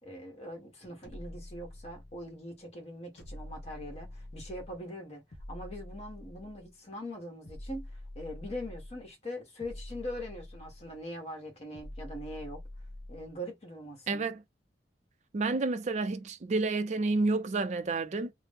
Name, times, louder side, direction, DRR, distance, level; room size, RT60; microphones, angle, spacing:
voice 1, 0.0-5.2 5.5-12.6 13.1-14.3, equal, 35° left, 1.2 m, -42 dB
sound 1, 1.0-2.3 3.2-4.8 5.3-6.7 7.4-9.1 9.6-11.0 11.7-13.3, left 1 dB, 70° left, 0.8 m, -46 dB
voice 2, 14.1-14.4 15.3-18.3, right 3 dB, 40° right, 0.4 m, -30 dB
2.9 x 2.0 x 3.4 m
head